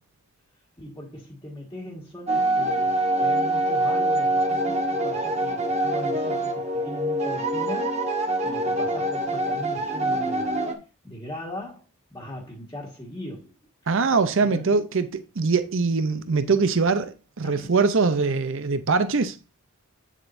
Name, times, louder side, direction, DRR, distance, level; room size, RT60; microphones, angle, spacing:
voice 1, 0.8-8.0 8.4-10.6 11.0-11.8 12.1-13.5 14.4-14.7 17.4-17.7, left 1 dB, 15° left, 1.6 m, -39 dB
sound 1, 2.3-10.7, right 1 dB, 30° right, 1.3 m, -25 dB
voice 2, 13.9-19.4, right 4 dB, 60° right, 0.6 m, -22 dB
8.9 x 7.3 x 2.6 m
head